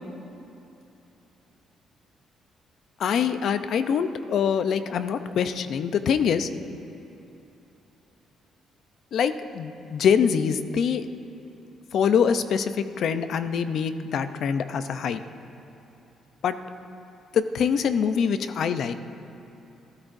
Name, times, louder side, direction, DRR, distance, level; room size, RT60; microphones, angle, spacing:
voice 1, 3.0-6.5 9.1-11.1 11.9-15.2 16.4-16.5 17.3-18.9, left 7 dB, 65° left, 10 dB, 0.7 m, -24 dB
28.5 x 14.0 x 2.7 m, 2.9 s
cardioid pair, 90°, 0 cm